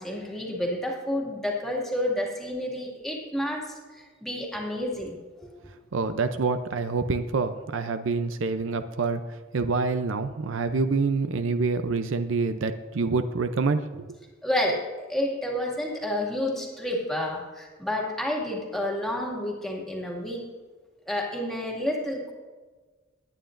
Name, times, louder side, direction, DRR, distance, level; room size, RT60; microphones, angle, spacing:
voice 1, 0.0-5.5 14.4-20.4 21.1-22.3, left 1 dB, ahead, -2 dB, 2.1 m, -30 dB
voice 2, 5.9-14.2, right 4 dB, 75° right, 10 dB, 0.6 m, -27 dB
20.0 x 9.3 x 2.6 m, 1.3 s
head